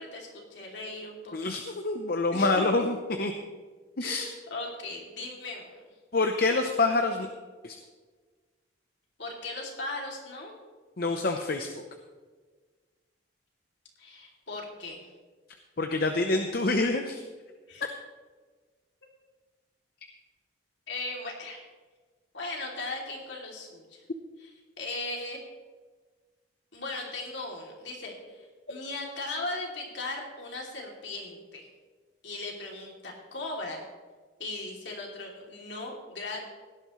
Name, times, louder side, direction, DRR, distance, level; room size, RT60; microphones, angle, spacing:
voice 1, 0.0-1.5 2.3-2.6 4.0-5.8 9.2-10.5 14.0-15.1 17.7-17.9 20.9-21.7 22.3-24.0 24.4-24.5 24.8-25.4 26.7-31.7 32.2-33.8 34.4-36.5, left 2 dB, 65° left, -1 dB, 2.8 m, -38 dB
voice 2, 1.3-3.3 4.0-4.2 6.1-7.3 7.6-7.8 11.0-11.7 15.8-17.2 28.7-28.8, left 3 dB, 50° left, 5 dB, 0.8 m, -26 dB
17.0 x 12.0 x 3.2 m, 1.4 s
head